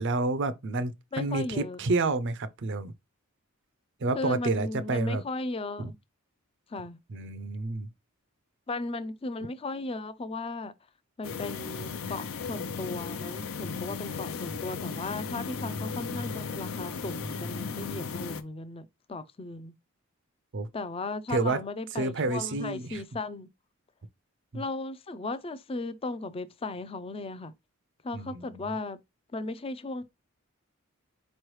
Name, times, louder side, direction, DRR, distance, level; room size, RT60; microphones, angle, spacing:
voice 1, 0.0-2.9 4.0-5.2 5.8-5.9 7.1-7.9 20.5-20.7 21.3-21.6 21.9-23.0 24.5-24.6 28.1-28.7, right 3 dB, 55° right, 0.5 m, -29 dB
voice 2, 1.1-1.8 4.1-5.9 6.7-7.0 8.7-10.7 11.2-19.7 20.7-23.5 24.5-27.5 28.0-29.0 29.3-30.0, left 3 dB, 25° left, 0.4 m, -36 dB
sound 1, 11.2-18.4, left 5 dB, 70° left, 0.6 m, -36 dB
4.5 x 3.1 x 3.1 m
head